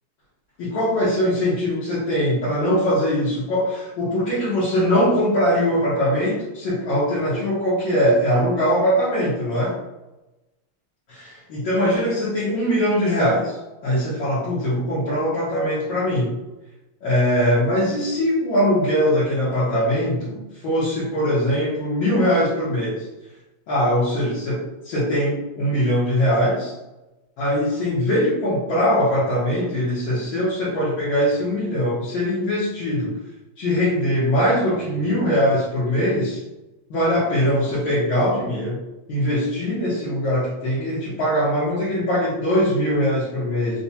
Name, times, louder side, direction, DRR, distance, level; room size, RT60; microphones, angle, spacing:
voice 1, 0.6-9.8 11.1-13.6 13.8-16.3 17.0-23.1 23.7-26.7 27.4-33.1 33.6-36.4 36.9-38.8 39.1-43.8, equal, 70° left, -8 dB, 1.6 m, -21 dB
4.3 x 2.1 x 2.7 m, 1.0 s
omnidirectional pair, 2.4 m